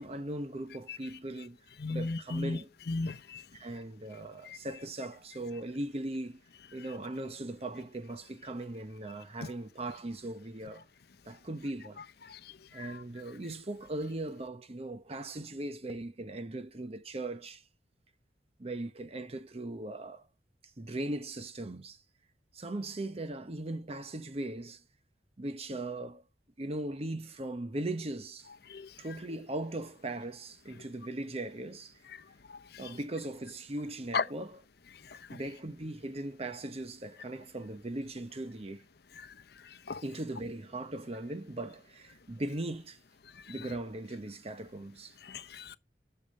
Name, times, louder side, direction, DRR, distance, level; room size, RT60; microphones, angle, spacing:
voice 1, 0.0-1.6 1.9-2.7 3.5-6.4 6.7-10.9 11.2-12.0 12.7-17.6 18.6-20.3 20.8-22.0 22.5-24.8 25.4-26.2 26.6-28.5 29.0-32.0 32.8-34.6 35.3-38.9 40.0-43.0 43.5-45.2, right 1 dB, 35° right, 0.8 m, -39 dB
voice 2, 1.8-2.6 2.9-3.4 12.3-12.4 12.8-12.9 28.7-28.9 34.1-34.2 35.1-35.2 39.9-40.0 45.3-45.8, left 3 dB, 60° left, 0.7 m, -34 dB
8.6 x 6.7 x 6.5 m
head